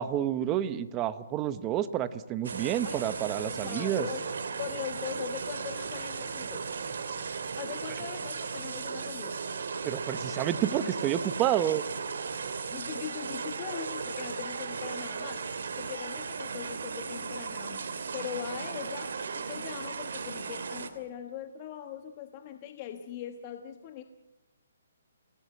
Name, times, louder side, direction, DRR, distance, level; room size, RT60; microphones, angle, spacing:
voice 1, 0.0-4.1 9.8-11.8, right 11 dB, 15° right, 12 dB, 0.9 m, -29 dB
sound 1, 2.4-20.9, right 5 dB, 65° right, 2.9 m, -36 dB
voice 2, 3.4-4.2 4.6-6.7 7.6-9.4 12.7-15.5 15.8-17.8 18.1-24.0, left 10 dB, 25° left, 6 dB, 1.3 m, -40 dB
28.5 x 18.5 x 7.9 m, 0.95 s
hypercardioid pair, 170°, 0 cm